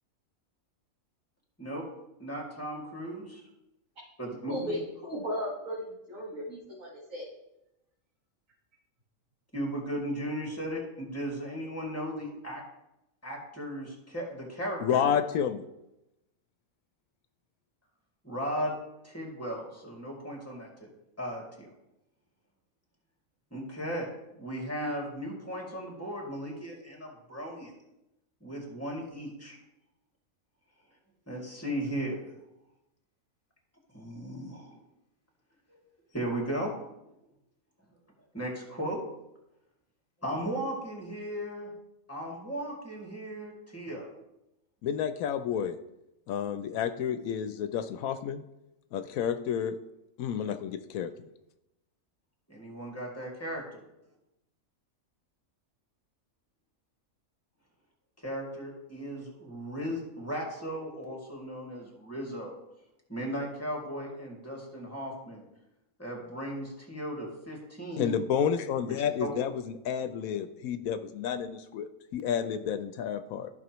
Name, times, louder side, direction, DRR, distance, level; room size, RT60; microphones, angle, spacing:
voice 1, 2.2-3.4 4.2-4.8 9.5-12.6 13.2-15.2 18.2-18.8 19.0-20.9 21.2-21.7 23.5-24.1 24.4-27.7 28.4-29.6 31.3-32.2 33.9-34.8 35.7-35.8 36.1-36.7 38.3-39.0 40.2-41.7 42.1-44.1 52.5-53.6 58.2-62.5 63.1-65.4 66.0-68.2 68.9-69.3, equal, 10° left, -2 dB, 2.3 m, -36 dB
voice 2, 4.5-7.3, equal, 70° right, -5 dB, 2.1 m, -36 dB
voice 3, 14.8-15.6 44.8-45.8 46.3-48.4 48.9-49.8 50.2-51.1 68.0-73.5, left 8 dB, 85° left, 10 dB, 1.0 m, -30 dB
14.0 x 5.7 x 3.0 m, 0.90 s
omnidirectional pair, 1.4 m